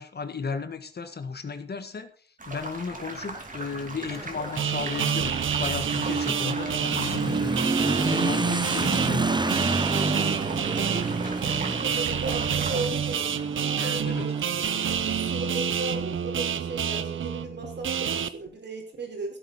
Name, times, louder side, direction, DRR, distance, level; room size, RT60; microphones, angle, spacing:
voice 1, 0.0-2.1 2.5-7.5 7.8-9.4 13.8-14.3, left 5 dB, 55° left, 9 dB, 1.6 m, -34 dB
sound 1, 2.4-12.9, right 2 dB, 40° right, 2.6 m, -39 dB
Motorcycle / Accelerating revving vroom, 3.2-15.5, right 3 dB, 20° right, 0.9 m, -30 dB
sound 2, 4.6-18.3, right 7 dB, 90° right, 0.8 m, -28 dB
voice 2, 6.4-7.2 10.7-13.3 13.7-19.4, right 3 dB, 60° right, 2 dB, 4.5 m, -37 dB
16.0 x 8.2 x 4.3 m, 0.42 s
wide cardioid pair, 80°, 20 cm